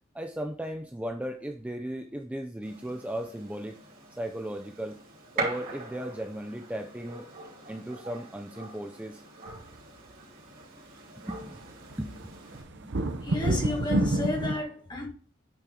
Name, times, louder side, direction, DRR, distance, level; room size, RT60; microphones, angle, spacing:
voice 1, 0.1-3.8 4.1-5.0 5.4-7.3 7.7-9.2 11.2-11.6 12.0-12.3 12.8-12.9, right 1 dB, 5° right, 0.5 m, -36 dB
Gunshot gunfire, 2.6-12.6, right 3 dB, 45° right, 3.1 m, -42 dB
sound 1, 9.5-9.6 11.5-11.6 11.9-14.5, right 2 dB, 60° right, 0.9 m, -28 dB
voice 2, 13.2-15.1, left 2 dB, 20° left, 1.7 m, -31 dB
8.9 x 4.5 x 3.8 m
head